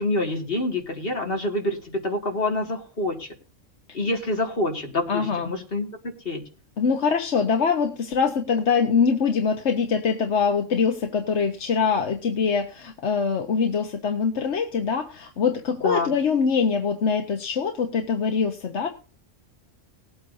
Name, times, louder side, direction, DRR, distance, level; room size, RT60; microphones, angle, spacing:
voice 1, 0.0-3.3 3.9-6.4 15.8-16.1, left 2 dB, 50° left, 2 dB, 2.3 m, -27 dB
voice 2, 5.1-5.5 6.8-18.9, left 5 dB, 70° left, 4 dB, 1.3 m, -23 dB
20.0 x 8.7 x 2.7 m, 0.34 s
omnidirectional pair, 1.3 m